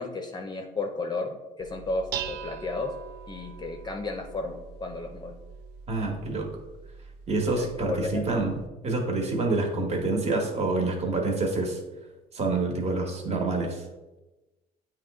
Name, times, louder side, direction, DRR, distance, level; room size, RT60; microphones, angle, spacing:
voice 1, 0.0-2.9 3.3-5.3 7.6-8.3, left 3 dB, 25° left, 4 dB, 0.6 m, -33 dB
Dishes pots and pans, 1.6-8.7, right 7 dB, 85° right, 0.4 m, -42 dB
voice 2, 5.9-6.5 7.3-11.8 12.3-13.8, right 3 dB, 40° right, 2 dB, 1.4 m, -27 dB
8.7 x 3.1 x 3.6 m, 1.1 s
cardioid pair, 110°, 17 cm